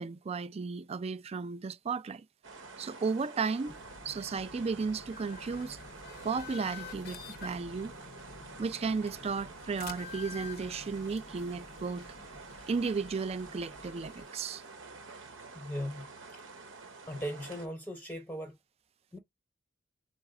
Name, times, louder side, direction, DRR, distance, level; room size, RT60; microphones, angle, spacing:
voice 1, 0.0-2.2 2.8-3.8 4.0-5.8 6.2-7.9 8.6-12.1 12.7-14.6, right 4 dB, 30° right, 0.4 m, -34 dB
sound 1, 2.4-17.7, right 3 dB, 85° right, 1.0 m, -49 dB
sound 2, 3.7-14.3, left 5 dB, 55° left, 0.6 m, -49 dB
voice 2, 15.6-16.0 17.1-18.5 19.1-19.2, equal, 10° left, 0.7 m, -38 dB
4.0 x 2.4 x 4.7 m
head